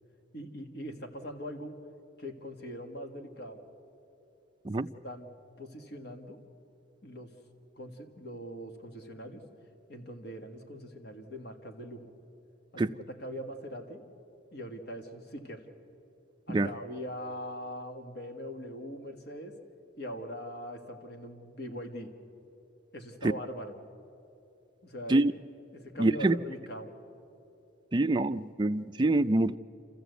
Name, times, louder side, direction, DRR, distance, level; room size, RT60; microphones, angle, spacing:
voice 1, 0.3-1.8 2.2-3.6 4.8-5.3 5.6-6.4 7.0-7.3 7.8-9.4 9.9-12.1 12.7-14.0 14.5-15.6 16.5-19.6 20.0-22.1 22.9-23.7 24.8-25.2 25.7-26.9, equal, 55° left, 1.7 m, -41 dB
voice 2, 26.0-26.3 27.9-29.5, right 2 dB, 25° right, 0.4 m, -25 dB
29.0 x 14.0 x 8.1 m
head